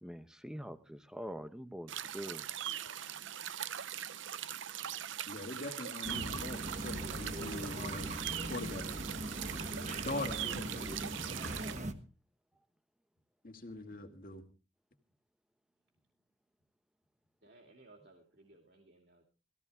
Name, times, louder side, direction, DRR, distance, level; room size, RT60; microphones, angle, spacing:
voice 1, 0.0-2.5, equal, 5° right, 10 dB, 1.0 m, -44 dB
sound 1, 1.9-11.8, right 10 dB, 80° right, 0.6 m, -41 dB
voice 2, 5.3-8.9 10.0-11.0 13.4-14.4, left 2 dB, 45° left, 5 dB, 2.2 m, -42 dB
sound 2, 6.0-11.9, right 1 dB, 35° right, 1.4 m, -40 dB
voice 3, 17.4-19.2, right 2 dB, 55° right, 2 dB, 2.7 m, -60 dB
19.5 x 15.5 x 3.6 m, 0.37 s
head